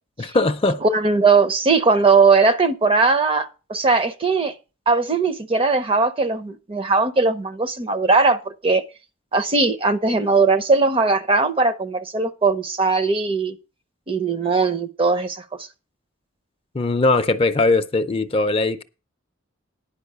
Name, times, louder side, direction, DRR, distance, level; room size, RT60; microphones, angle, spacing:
voice 1, 0.2-0.8 16.7-18.8, left 2 dB, 25° left, 0.5 m, -20 dB
voice 2, 0.8-4.5 4.9-8.8 9.3-13.6 14.1-15.4, right 4 dB, 25° right, 0.6 m, -19 dB
10.5 x 5.2 x 6.6 m
head